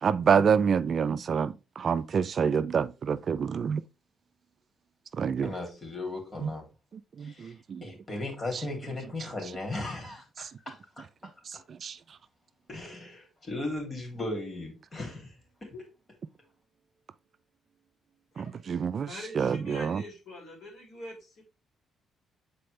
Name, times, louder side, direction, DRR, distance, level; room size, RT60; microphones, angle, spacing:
voice 1, 0.0-3.8 5.2-5.5 6.4-6.5 7.2-7.9 11.5-12.0 18.4-19.1 19.4-20.0, right 6 dB, 50° right, 0.4 m, -27 dB
voice 2, 5.4-6.6 7.2-7.5 7.8-11.0 12.7-15.3 15.6-15.8, left 2 dB, 30° left, 2.8 m, -37 dB
voice 3, 19.0-21.4, left 1 dB, 70° left, 3.2 m, -44 dB
6.9 x 4.2 x 3.2 m
cardioid pair, 90°, 0 cm